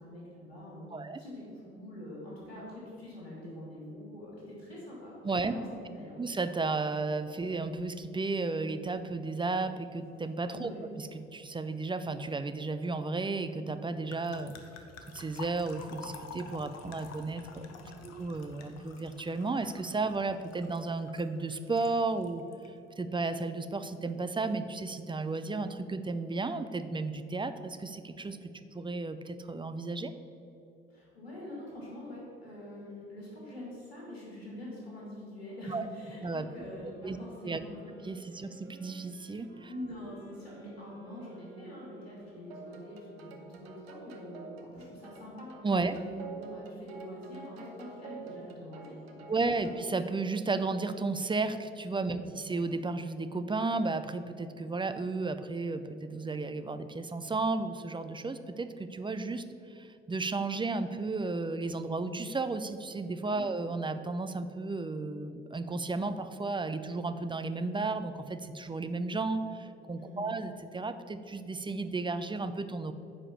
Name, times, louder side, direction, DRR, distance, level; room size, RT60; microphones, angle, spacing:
voice 1, 0.0-6.2 10.5-10.8 17.5-18.1 30.9-37.9 38.2-38.5 39.7-49.7 52.1-52.3 63.3-63.5 70.0-70.3, left 1 dB, 80° left, -5 dB, 2.4 m, -45 dB
voice 2, 0.9-1.2 5.2-5.5 6.2-10.7 11.0-14.5 15.1-17.7 18.0-22.4 23.0-30.1 35.7-35.9 36.2-36.5 37.0-37.2 37.4-37.6 38.0-39.7 45.6-45.9 49.3-59.4 59.7-72.9, right 3 dB, 15° right, 10 dB, 0.6 m, -33 dB
sound 1, 10.6-10.8 11.1-11.4 14.1-21.9 22.2-22.7, left 4 dB, 55° left, 1.1 m, -49 dB
sound 2, 36.3-44.0, right 3 dB, 35° right, 2.2 m, -56 dB
sound 3, 42.5-49.9, right 5 dB, 75° right, 1.0 m, -48 dB
9.7 x 4.9 x 7.2 m, 2.8 s
figure-of-eight pair, 50°, 31 cm